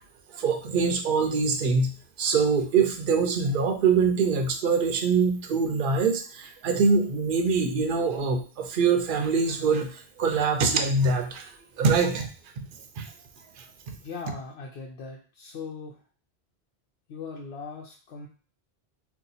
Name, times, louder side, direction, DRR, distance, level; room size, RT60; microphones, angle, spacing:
voice 1, 0.3-1.9 2.2-11.5 11.8-12.3 12.6-12.7 13.0-13.1 13.6-13.7, right 5 dB, 60° right, 6 dB, 0.7 m, -24 dB
voice 2, 14.0-16.0 17.1-18.3, left 4 dB, 85° left, -2 dB, 0.9 m, -39 dB
2.8 x 2.2 x 3.9 m, 0.37 s
omnidirectional pair, 1.1 m